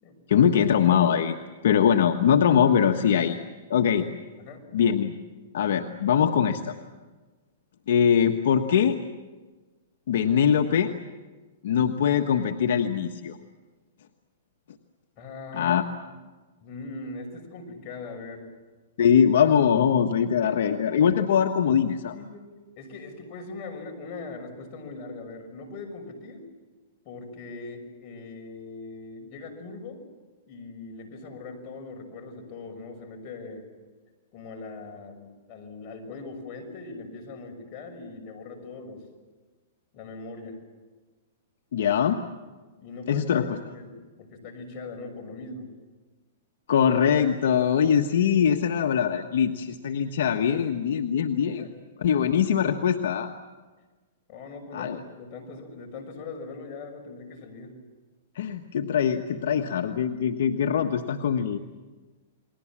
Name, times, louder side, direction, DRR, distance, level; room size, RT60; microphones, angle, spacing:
voice 1, 0.3-3.4 3.7-4.1 4.7-5.1 5.5-6.7 7.9-9.0 10.1-10.9 11.6-13.4 15.5-15.8 19.0-22.2 41.7-42.2 43.1-43.4 46.7-51.7 52.0-53.3 54.7-55.0 58.3-61.6, left 8 dB, 70° left, 5 dB, 1.3 m, -22 dB
voice 2, 15.2-15.9 16.6-18.5 20.2-20.7 22.1-22.5 22.8-26.4 27.0-30.0 30.5-33.6 34.3-39.0 39.9-40.6 42.8-43.5 43.7-45.7 51.4-51.8 54.3-57.7, left 3 dB, 35° left, 4 dB, 6.1 m, -40 dB
29.5 x 21.5 x 7.5 m, 1.3 s
hypercardioid pair, 145°, 0 cm